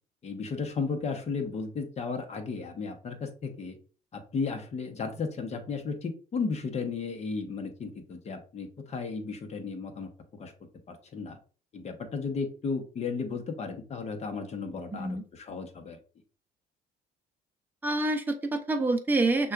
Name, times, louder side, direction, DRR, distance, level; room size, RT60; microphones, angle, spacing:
voice 1, 0.2-3.8 4.1-10.1 10.4-10.5 10.9-11.4 11.7-16.0, left 4 dB, 40° left, 5 dB, 1.0 m, -34 dB
voice 2, 14.9-15.2 17.8-19.5, right 2 dB, 10° right, 4 dB, 0.6 m, -27 dB
6.2 x 2.4 x 2.4 m, 0.38 s
cardioid pair, 110°, 17 cm